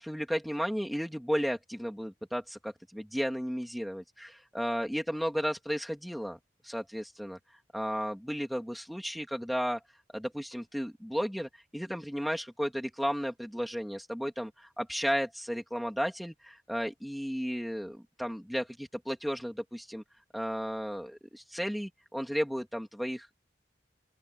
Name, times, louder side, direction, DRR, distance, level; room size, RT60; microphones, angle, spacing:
voice 1, 0.0-6.4 6.6-7.4 7.7-9.8 10.1-20.0 20.3-23.3, equal, ahead, 2.7 m, -34 dB
open air
head